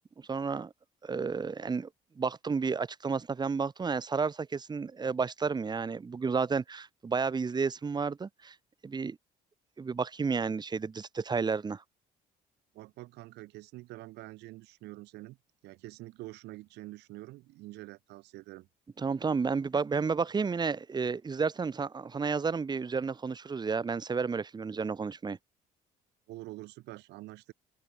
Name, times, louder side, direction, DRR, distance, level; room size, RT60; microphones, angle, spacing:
voice 1, 0.3-0.7 1.0-1.9 2.2-8.5 8.8-9.2 9.8-11.8 19.0-25.4, right 5 dB, 25° right, 1.4 m, -31 dB
voice 2, 12.7-15.4 15.6-18.7 26.3-27.5, right 19 dB, 85° right, 6.8 m, -46 dB
cardioid pair, 110°, 17 cm